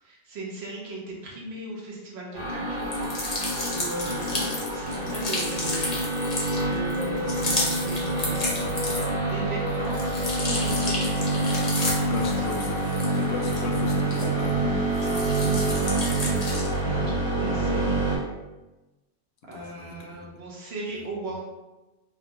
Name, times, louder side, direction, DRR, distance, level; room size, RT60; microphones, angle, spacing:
voice 1, 0.0-3.1 3.7-6.0 6.6-11.1 11.7-12.7 15.0-18.0 19.5-21.4, right 2 dB, 65° right, -3 dB, 1.1 m, -38 dB
sound 1, 2.3-18.2, right 1 dB, 85° right, 1.8 m, -27 dB
sound 2, 2.8-9.3 9.7-14.6 14.9-16.8, left 2 dB, 40° left, 0.8 m, -32 dB
voice 2, 12.1-12.8 13.1-14.7 19.5-20.3, left 3 dB, 70° left, 2 dB, 0.8 m, -37 dB
3.6 x 2.3 x 2.8 m, 1.1 s
omnidirectional pair, 1.2 m